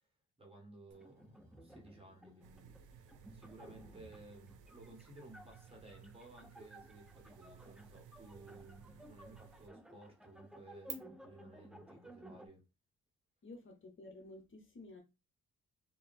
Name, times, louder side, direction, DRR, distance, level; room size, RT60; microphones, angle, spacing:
voice 1, 0.4-12.6, right 2 dB, 20° right, 1.7 m, -57 dB
sound 1, 0.9-12.5, equal, ahead, 0.5 m, -57 dB
sound 2, 0.9-10.9, right 11 dB, 65° right, 1.2 m, -60 dB
sound 3, 2.4-9.7, right 7 dB, 90° right, 0.6 m, -59 dB
voice 2, 13.4-15.0, left 2 dB, 40° left, 1.0 m, -52 dB
3.2 x 2.7 x 4.2 m
cardioid pair, 90°, 30 cm